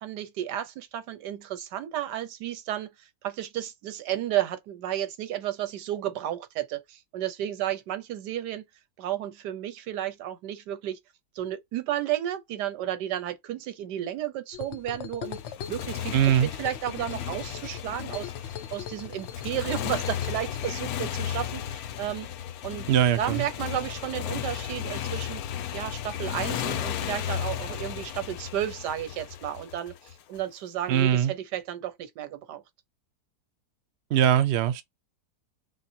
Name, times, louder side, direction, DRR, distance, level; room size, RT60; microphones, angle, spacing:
voice 1, 0.0-8.6 9.0-11.0 11.3-15.4 15.7-16.1 16.6-22.3 22.6-22.9 23.2-25.4 25.7-32.6, right 12 dB, 90° right, 1.3 m, -32 dB
sound 1, 14.5-20.7, left 9 dB, 85° left, 0.6 m, -41 dB
Motorcycle, 15.2-30.4, left 10 dB, 70° left, 1.0 m, -34 dB
voice 2, 16.1-16.5 22.9-23.4 30.9-31.3 34.1-34.8, right 10 dB, 70° right, 0.6 m, -21 dB
5.2 x 2.1 x 2.7 m
omnidirectional pair, 1.8 m